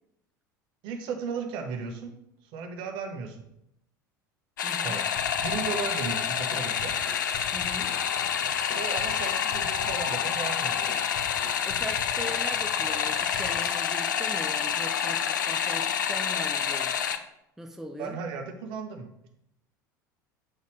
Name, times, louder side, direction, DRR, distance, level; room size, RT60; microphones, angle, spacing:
voice 1, 0.8-2.1 2.4-3.4 4.8-5.0 5.4-6.9 8.7-10.9 18.0-19.3, right 5 dB, 50° right, 5 dB, 0.9 m, -35 dB
sound 1, 4.6-17.2, left 8 dB, 70° left, 0.4 m, -28 dB
voice 2, 4.6-5.0 7.5-7.9 11.6-17.1 17.6-18.2, equal, 5° right, 4 dB, 0.5 m, -40 dB
sound 2, 5.2-13.8, left 3 dB, 55° left, 1.1 m, -44 dB
7.4 x 4.0 x 3.2 m, 0.78 s
figure-of-eight pair, 70°, 11 cm